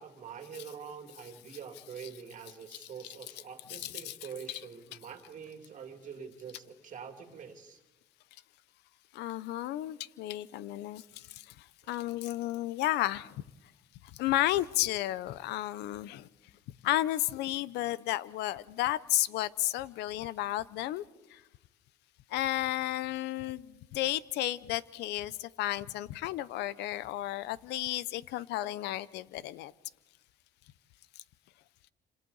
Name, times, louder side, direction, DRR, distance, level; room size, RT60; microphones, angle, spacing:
voice 1, 0.0-7.8 11.8-11.9, right 7 dB, 50° right, 5 dB, 2.3 m, -45 dB
voice 2, 3.7-4.1 4.5-4.6 9.1-11.2 11.9-13.3 14.2-16.3 16.8-21.0 22.3-29.7, left 15 dB, 85° left, 19 dB, 0.7 m, -32 dB
28.0 x 26.5 x 4.0 m, 1.0 s
cardioid pair, 110°, 17 cm